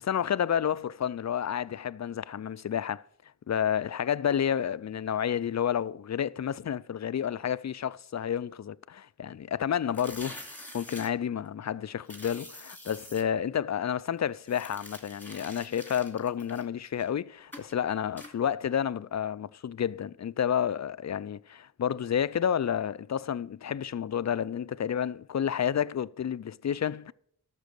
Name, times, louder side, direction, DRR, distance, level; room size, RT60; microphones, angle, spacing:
voice 1, 0.0-3.0 3.5-10.4 10.7-27.1, left 9 dB, 50° left, 0.5 m, -30 dB
sound 1, 9.9-11.1 12.1-13.2 14.4-17.1 17.5-17.7 18.2-18.3, left 1 dB, 5° left, 2.6 m, -46 dB
12.0 x 6.8 x 6.5 m
cardioid pair, 40°, 37 cm